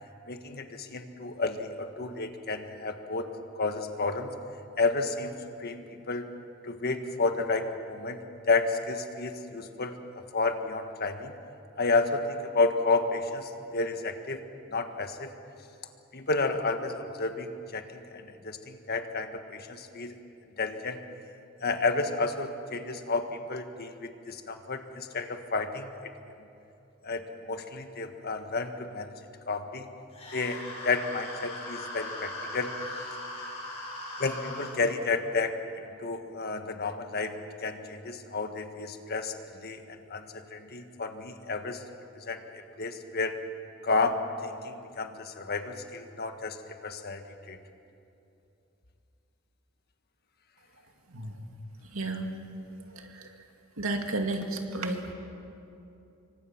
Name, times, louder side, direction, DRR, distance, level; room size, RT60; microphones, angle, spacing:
voice 1, 0.3-3.3 3.5-4.3 4.8-6.3 6.6-8.2 8.5-10.0 10.3-11.3 11.8-14.4 14.7-15.3 16.1-20.1 20.6-21.0 21.6-25.9 27.0-29.1 29.5-29.9 30.3-32.7 34.2-41.8 42.2-43.3 43.8-47.6, left 3 dB, 50° left, 6 dB, 1.6 m, -31 dB
sound 1, 30.1-34.7, left 1 dB, 30° left, 7.1 m, -39 dB
voice 2, 51.1-51.4 51.8-52.3 52.9-53.4 53.8-55.1, right 2 dB, 90° right, 3 dB, 2.4 m, -33 dB
26.5 x 24.0 x 6.0 m, 2.7 s
head